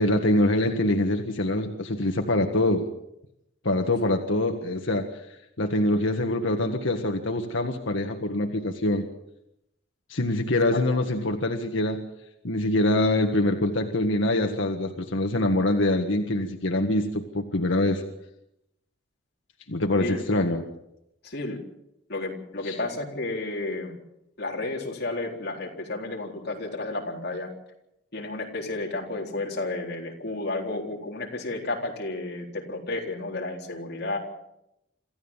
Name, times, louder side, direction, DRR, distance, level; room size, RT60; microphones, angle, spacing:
voice 1, 0.0-2.9 3.6-9.0 10.1-12.0 12.4-18.0 19.7-20.7 22.6-22.8, left 1 dB, 90° left, 4 dB, 1.7 m, -24 dB
voice 2, 21.2-21.6 22.1-23.9 24.4-27.5 28.1-34.2, left 2 dB, 55° left, 0 dB, 4.0 m, -32 dB
26.5 x 14.5 x 7.3 m, 0.85 s
head